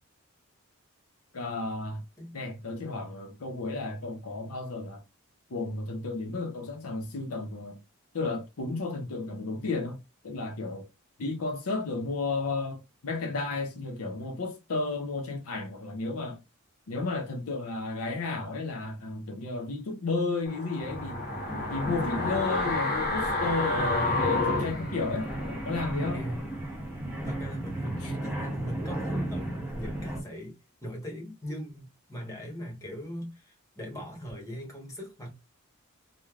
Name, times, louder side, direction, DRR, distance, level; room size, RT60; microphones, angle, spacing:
voice 1, 1.3-2.0 2.3-5.0 5.5-7.8 8.1-10.9 11.2-16.4 16.9-21.2 21.7-26.2 28.0-28.2, left 3 dB, 75° left, 0.6 m, -33 dB
sound 1, 20.5-25.6 25.9-26.0, left 3 dB, 45° left, 0.8 m, -30 dB
sound 2, 20.8-30.2, right 1 dB, 5° right, 0.9 m, -35 dB
voice 2, 23.6-24.3 26.1-26.6 27.2-35.3, equal, 15° left, 1.1 m, -40 dB
3.2 x 2.2 x 2.3 m
head